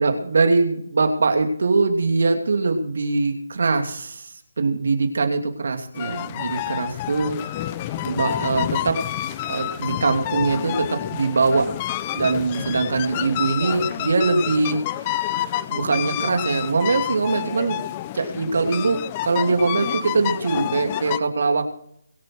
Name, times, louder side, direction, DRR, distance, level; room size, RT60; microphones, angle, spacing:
voice 1, 0.0-7.6 8.0-9.0 9.5-11.7 12.1-14.8 15.1-15.2 15.7-17.8 18.1-21.7, right 3 dB, 65° right, 5 dB, 2.9 m, -22 dB
sound 1, 5.9-21.2, left 13 dB, 25° left, 0.7 m, -29 dB
24.0 x 8.3 x 4.7 m, 0.69 s
figure-of-eight pair, 160°, 0 cm